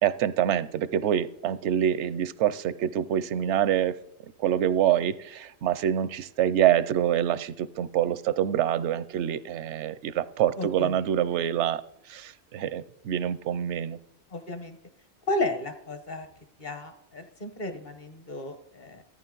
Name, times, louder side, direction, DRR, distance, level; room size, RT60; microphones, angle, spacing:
voice 1, 0.0-4.0 4.4-11.8 12.1-14.0, right 10 dB, 85° right, 16 dB, 0.9 m, -26 dB
voice 2, 10.6-11.0 14.3-14.8 15.3-16.3 16.6-19.0, left 2 dB, 45° left, 8 dB, 1.2 m, -33 dB
13.5 x 9.2 x 3.8 m, 0.82 s
omnidirectional pair, 1.2 m